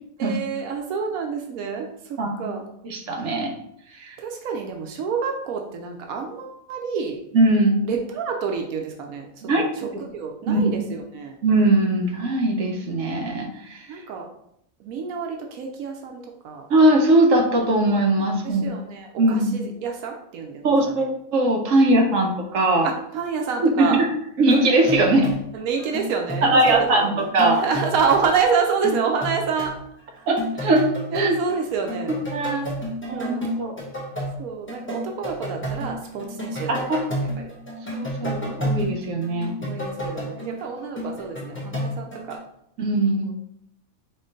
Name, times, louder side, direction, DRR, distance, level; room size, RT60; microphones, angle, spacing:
voice 1, 0.2-2.7 4.2-7.2 7.8-11.4 13.9-14.3 14.8-16.7 18.4-21.1 21.8-22.3 22.8-24.0 25.5-29.7 30.1-30.3 31.1-32.2 33.1-33.5 34.4-37.1 37.4-37.5 39.6-42.4 43.2-43.3, right 5 dB, 90° right, 3 dB, 1.1 m, -28 dB
voice 2, 2.2-2.5 2.8-3.5 4.0-4.1 7.3-7.9 9.4-9.6 10.5-10.6 11.4-13.8 16.7-18.6 19.2-19.6 20.6-22.9 23.6-24.1 24.4-25.3 26.4-27.6 30.3-30.9 31.1-31.4 32.3-32.7 33.1-33.7 36.7-37.0 37.9-39.6 42.8-43.3, right 1 dB, 70° right, 2 dB, 1.1 m, -20 dB
sound 1, 24.5-25.5 25.8-28.3 28.6-29.8 30.2-31.6 31.9-42.4, equal, 10° left, 0.7 m, -31 dB
4.3 x 3.0 x 3.9 m, 0.73 s
omnidirectional pair, 1.4 m